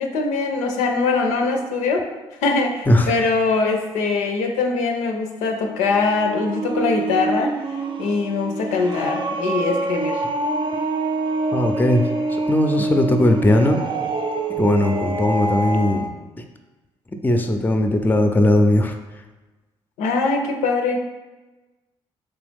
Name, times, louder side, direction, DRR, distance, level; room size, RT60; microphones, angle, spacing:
voice 1, 0.0-2.1 2.4-7.5 8.0-10.2 12.8-13.2 20.0-21.0, left 4 dB, 80° left, 3 dB, 0.5 m, -22 dB
sound 1, 5.6-16.1, right 2 dB, 40° right, 0.4 m, -26 dB
voice 2, 11.5-12.1 12.5-13.8 14.6-16.1 16.4-16.5 17.2-19.0, left 1 dB, 15° left, 5 dB, 0.5 m, -18 dB
3.4 x 3.0 x 3.4 m, 1.2 s
hypercardioid pair, 50°, 12 cm